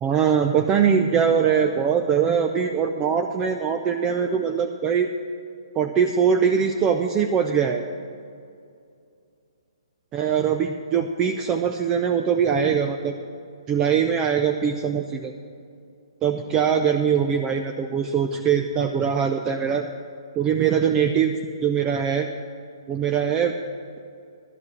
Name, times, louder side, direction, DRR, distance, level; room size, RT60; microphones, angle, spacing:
voice 1, 0.0-5.1 5.7-7.9 10.1-13.2 13.7-15.3 16.2-19.9 20.4-21.3 21.6-22.3 22.9-23.5, right 7 dB, 20° right, 5 dB, 0.5 m, -22 dB
11.5 x 7.2 x 7.9 m, 2.4 s
hypercardioid pair, 135°, 3 cm